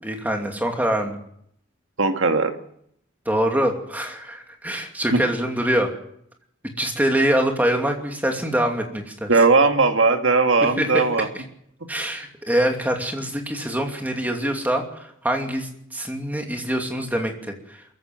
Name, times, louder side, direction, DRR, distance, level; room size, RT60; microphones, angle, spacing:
voice 1, 0.0-1.2 3.3-5.9 6.8-9.3 10.6-10.9 11.9-17.3, right 1 dB, 10° right, 2 dB, 2.7 m, -24 dB
voice 2, 2.0-2.5 9.3-11.3 11.8-11.9, right 4 dB, 75° right, 5 dB, 2.1 m, -18 dB
22.5 x 15.0 x 7.7 m, 0.71 s
head